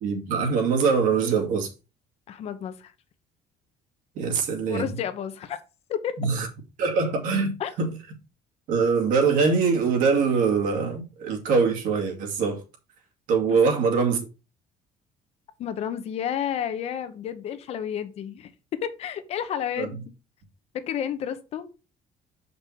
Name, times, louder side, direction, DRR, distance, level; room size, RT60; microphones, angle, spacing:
voice 1, 0.0-1.7 4.2-4.9 6.2-6.5 6.8-7.5 7.8-7.9 8.7-12.6 13.3-14.3 19.8-19.9, right 5 dB, 65° right, 2.4 m, -23 dB
voice 2, 2.3-2.9 4.7-5.6 5.9-6.2 7.6-7.7 13.5-13.6 15.6-20.0 20.7-21.7, left 9 dB, 45° left, 1.0 m, -31 dB
7.5 x 5.4 x 4.5 m
cardioid pair, 165°, 14 cm